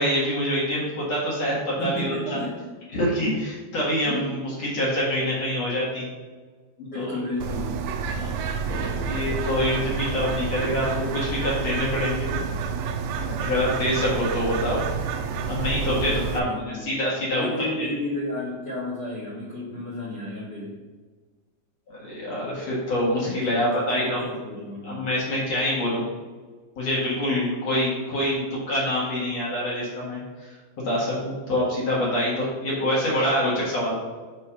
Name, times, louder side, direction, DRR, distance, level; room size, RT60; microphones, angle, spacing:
voice 1, 0.0-2.4 2.9-6.0 6.9-7.2 8.1-12.3 13.4-14.8 15.5-17.5 17.8-17.9 21.9-24.2 24.8-26.0 26.8-30.2 30.8-34.0, left 1 dB, 50° left, -7 dB, 2.2 m, -26 dB
voice 2, 1.8-2.6 2.9-3.0 4.0-4.3 6.8-7.8 16.2-16.9 17.2-20.8 23.4-25.1, left 2 dB, 80° left, -9 dB, 1.3 m, -32 dB
Bird, 7.4-16.4, right 5 dB, 80° right, 2.6 m, -29 dB
7.1 x 3.2 x 5.8 m, 1.4 s
omnidirectional pair, 5.2 m